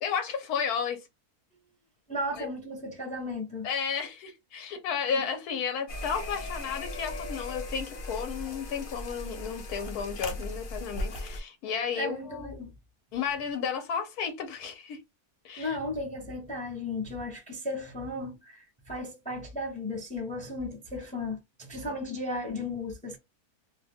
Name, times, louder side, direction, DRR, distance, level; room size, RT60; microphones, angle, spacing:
voice 1, 0.0-1.0 2.4-2.5 3.6-12.6 13.1-15.0 15.4-15.8, left 6 dB, 90° left, 1.2 m, -33 dB
voice 2, 2.1-3.7 12.0-12.7 15.6-23.2, left 2 dB, 10° left, 0.5 m, -35 dB
sound 1, 5.9-11.4, left 1 dB, 50° left, 0.7 m, -37 dB
2.8 x 2.2 x 3.4 m
omnidirectional pair, 1.6 m